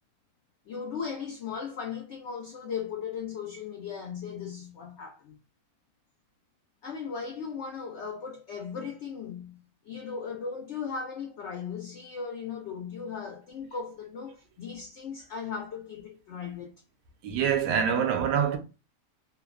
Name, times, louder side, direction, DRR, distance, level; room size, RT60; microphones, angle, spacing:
voice 1, 0.7-5.3 6.8-16.7, left 6 dB, 85° left, 0.6 m, -37 dB
voice 2, 17.2-18.6, right 8 dB, 85° right, 1.2 m, -25 dB
3.1 x 2.0 x 2.3 m
omnidirectional pair, 1.7 m